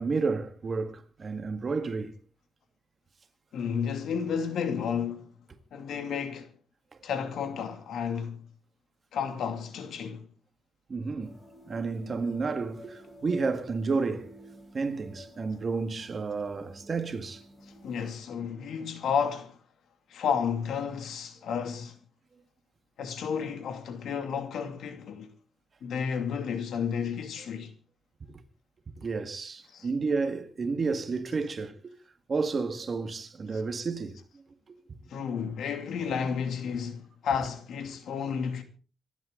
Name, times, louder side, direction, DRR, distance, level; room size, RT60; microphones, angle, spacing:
voice 1, 0.0-2.1 10.9-11.4 11.7-14.3 14.7-17.4 28.3-28.4 29.0-31.9 32.3-34.2 34.7-35.0, right 4 dB, 35° right, 1.9 m, -31 dB
voice 2, 3.5-5.3 5.7-6.5 7.0-8.5 9.1-10.3 17.8-19.6 20.1-22.0 23.0-25.3 25.8-27.7 29.7-29.9 35.1-38.6, left 7 dB, 75° left, 2.6 m, -32 dB
sound 1, 11.2-18.2, left 1 dB, 15° left, 7.5 m, -51 dB
26.0 x 11.5 x 3.9 m
cardioid pair, 120°, 0 cm